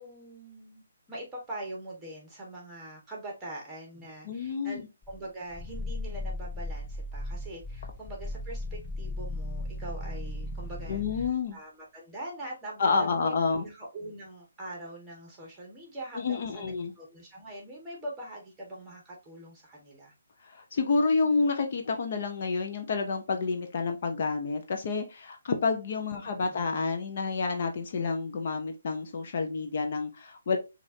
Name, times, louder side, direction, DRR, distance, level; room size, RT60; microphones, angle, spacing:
voice 1, 0.0-20.1 26.1-26.6, right 1 dB, 10° right, -1 dB, 1.4 m, -43 dB
voice 2, 4.2-4.9 10.9-11.6 12.8-13.7 16.1-16.9 20.4-30.6, left 4 dB, 50° left, 5 dB, 0.6 m, -29 dB
Growling, 5.0-11.4, left 1 dB, 15° left, 0.4 m, -37 dB
4.9 x 2.5 x 2.7 m, 0.26 s
hypercardioid pair, 155°, 0 cm